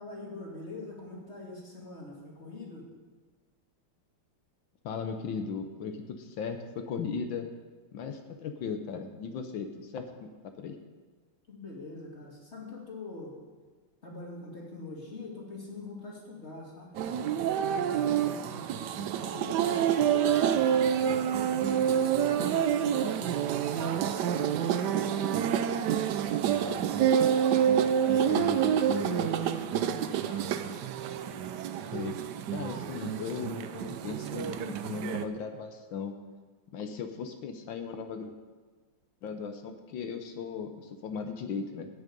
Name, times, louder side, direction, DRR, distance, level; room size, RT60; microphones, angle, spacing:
voice 1, 0.0-2.9 11.5-13.3 14.0-17.2 17.6-20.4 20.9-26.9 27.6-28.5 29.0-30.6, left 2 dB, 30° left, -2 dB, 2.5 m, -44 dB
voice 2, 4.8-7.5 7.9-10.3 10.6-10.8 28.3-28.6 31.9-32.2 32.5-36.1 36.7-38.3 39.2-41.9, left 5 dB, 70° left, 6 dB, 1.5 m, -37 dB
sound 1, 17.0-35.2, right 9 dB, 75° right, 1.0 m, -28 dB
17.5 x 6.4 x 5.3 m, 1.4 s
omnidirectional pair, 2.3 m